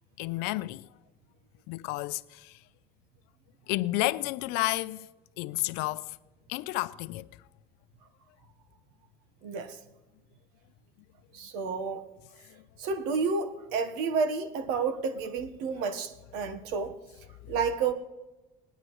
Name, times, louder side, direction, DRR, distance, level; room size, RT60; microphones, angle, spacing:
voice 1, 0.2-0.9 1.7-2.6 3.7-5.1 5.4-6.2 6.5-7.3 12.5-12.6, left 19 dB, 75° left, 0.5 m, -31 dB
voice 2, 9.4-9.8 11.3-12.0 12.8-17.0 17.5-17.9, right 5 dB, 85° right, 1.2 m, -30 dB
20.0 x 10.0 x 3.1 m
cardioid pair, 120°, 17 cm